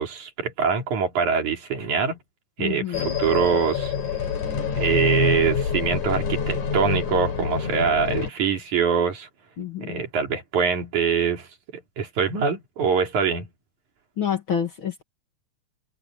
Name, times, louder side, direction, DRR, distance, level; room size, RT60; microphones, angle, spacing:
voice 1, 0.0-2.2 2.6-3.9 4.8-9.3 9.8-11.5 11.7-13.5, right 6 dB, 80° right, 4.4 m, -24 dB
voice 2, 2.6-3.1 9.6-10.0 14.2-15.0, left 8 dB, 45° left, 2.4 m, -28 dB
sound 1, 2.9-8.3, left 6 dB, 75° left, 5.1 m, -26 dB
open air
omnidirectional pair, 3.4 m